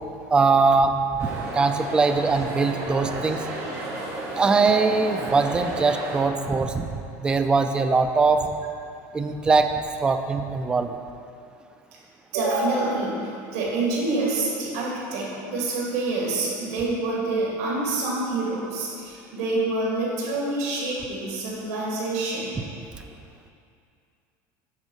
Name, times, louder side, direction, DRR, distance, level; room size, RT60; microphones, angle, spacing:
voice 1, 0.3-3.4 4.4-8.5 9.1-9.7 10.0-11.0, right 4 dB, 10° right, 7 dB, 0.3 m, -21 dB
sound 1, 1.2-6.2, right 2 dB, 30° right, 1.5 m, -33 dB
voice 2, 12.3-13.2 13.5-22.6, right 2 dB, 85° right, -4 dB, 2.2 m, -27 dB
9.5 x 4.5 x 6.2 m, 2.4 s
cardioid pair, 180°, 8 cm